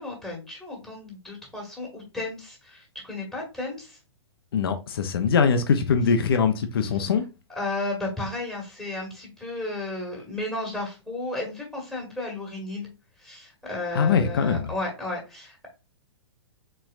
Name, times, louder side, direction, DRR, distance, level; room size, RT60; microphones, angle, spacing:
voice 1, 0.0-4.0 7.5-12.9 13.2-15.7, left 2 dB, 5° left, 2.0 m, -33 dB
voice 2, 4.5-7.2 13.9-14.7, left 6 dB, 55° left, 0.8 m, -22 dB
4.3 x 4.3 x 2.5 m
figure-of-eight pair, 110°, 15 cm